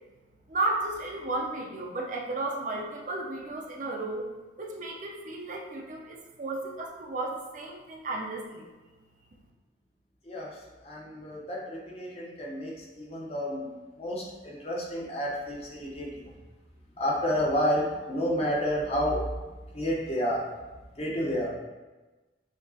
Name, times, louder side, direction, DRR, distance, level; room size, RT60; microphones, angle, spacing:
voice 1, 0.5-4.3 4.6-8.7, right 2 dB, 40° right, -1 dB, 0.5 m, -33 dB
voice 2, 10.8-16.1 17.0-19.2 19.7-20.4 21.0-21.5, equal, 35° left, -3 dB, 0.8 m, -30 dB
6.3 x 2.9 x 2.7 m, 1.2 s
head